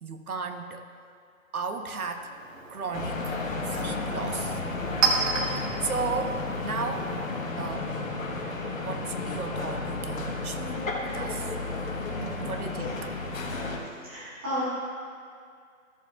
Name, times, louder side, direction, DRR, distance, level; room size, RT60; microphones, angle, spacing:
voice 1, 0.0-0.9 1.5-2.3 2.7-4.6 5.4-7.1 7.6-8.1 8.8-11.5 12.2-12.9, right 4 dB, 85° right, 6 dB, 1.0 m, -35 dB
Chink clink, 2.1-7.6, right 4 dB, 60° right, 1.6 m, -33 dB
sound 1, 2.9-13.8, left 3 dB, 65° left, 1.4 m, -32 dB
voice 2, 13.6-14.6, equal, 10° right, -11 dB, 1.0 m, -35 dB
14.0 x 7.2 x 2.5 m, 2.2 s
hypercardioid pair, 165°, 42 cm